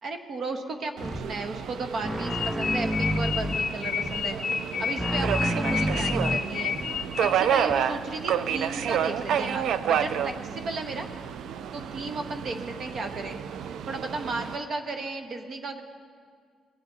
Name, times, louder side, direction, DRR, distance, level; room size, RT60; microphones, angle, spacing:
voice 1, 0.0-6.8 7.2-11.1 11.7-13.4 13.9-15.8, right 3 dB, 55° right, 6 dB, 1.0 m, -34 dB
sound 1, 1.0-1.3 2.0-3.7 4.0-4.3 5.0-6.9 7.7-7.8, equal, ahead, 0.4 m, -29 dB
Subway metro underground, 1.0-14.6, right 8 dB, 75° right, 0.4 m, -30 dB
sound 2, 2.3-7.6, left 7 dB, 60° left, 0.7 m, -30 dB
18.5 x 8.0 x 3.9 m, 2.1 s
cardioid pair, 90°, 0 cm